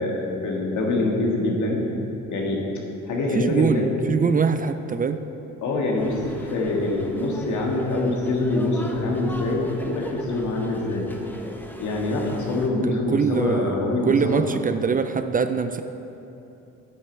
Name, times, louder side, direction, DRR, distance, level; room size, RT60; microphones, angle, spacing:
voice 1, 0.0-1.8 2.3-2.6 3.1-4.0 5.6-11.1 11.8-14.4, left 2 dB, 75° left, -1 dB, 1.7 m, -24 dB
voice 2, 3.3-5.2 12.8-15.8, right 6 dB, 30° right, 9 dB, 0.4 m, -23 dB
sound 1, 6.0-12.7, left 1 dB, 5° left, 0.8 m, -41 dB
9.6 x 7.9 x 4.5 m, 2.9 s
cardioid pair, 90°, 30 cm